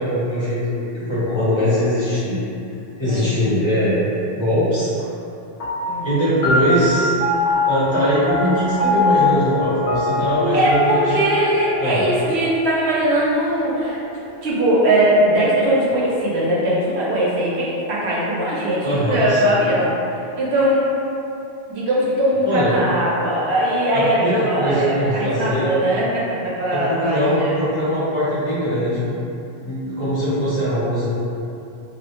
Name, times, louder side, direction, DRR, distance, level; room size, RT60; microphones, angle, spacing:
voice 1, 0.0-2.4 3.0-4.0 4.4-4.9 6.0-7.2 7.6-11.0 11.8-12.0 18.8-19.5 22.4-22.7 23.9-25.7 26.7-29.1 29.6-31.2, equal, 35° left, -12 dB, 0.6 m, -21 dB
voice 2, 3.0-3.6 5.9-6.4 10.5-14.0 14.4-19.9 20.4-20.8 21.7-27.5, right 1 dB, 80° right, -6 dB, 0.9 m, -20 dB
sound 1, 5.6-14.4, left 2 dB, 85° left, 0.8 m, -23 dB
2.3 x 2.1 x 2.8 m, 2.8 s
omnidirectional pair, 1.1 m